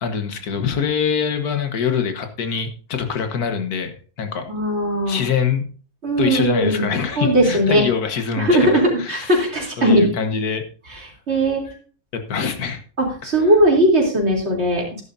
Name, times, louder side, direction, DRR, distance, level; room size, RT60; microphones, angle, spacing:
voice 1, 0.0-4.5 5.1-5.7 6.2-8.7 9.0-9.4 9.8-10.6 12.1-12.8, left 7 dB, 80° left, 7 dB, 1.8 m, -24 dB
voice 2, 4.5-5.2 6.0-6.8 7.2-7.8 8.4-10.1 10.9-11.0 11.3-11.6 13.0-15.0, right 1 dB, 45° right, -1 dB, 3.7 m, -18 dB
13.0 x 11.0 x 2.7 m, 0.39 s
omnidirectional pair, 1.6 m